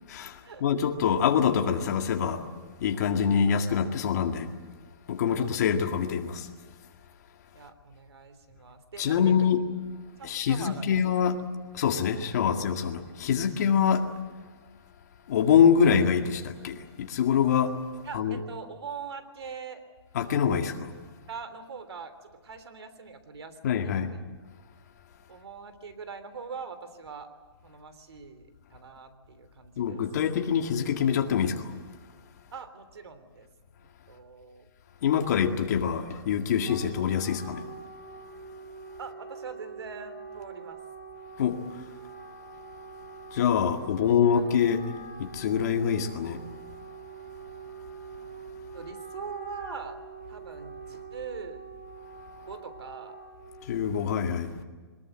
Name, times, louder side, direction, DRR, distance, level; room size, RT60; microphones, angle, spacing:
voice 1, 0.1-2.4 2.8-4.5 5.1-6.5 9.0-9.6 10.2-11.4 11.7-14.1 15.3-17.8 18.1-18.4 20.1-20.9 23.6-24.1 29.8-31.7 35.0-37.6 41.4-41.6 43.3-44.8 45.2-46.4 53.7-54.5, left 7 dB, 40° left, 2.0 m, -25 dB
voice 2, 7.5-9.5 10.2-11.3 12.5-12.6 18.0-19.8 21.3-24.2 25.3-27.3 27.6-30.0 32.5-33.5 33.8-34.7 39.0-40.8 43.7-44.1 44.3-44.8 48.7-50.0 50.3-51.6 52.4-53.2, right 5 dB, 75° right, 3.3 m, -43 dB
Wind instrument woodwind instrument, 36.4-53.9, right 5 dB, 20° right, 6.9 m, -45 dB
23.0 x 20.5 x 9.0 m
hypercardioid pair, 165°, 14 cm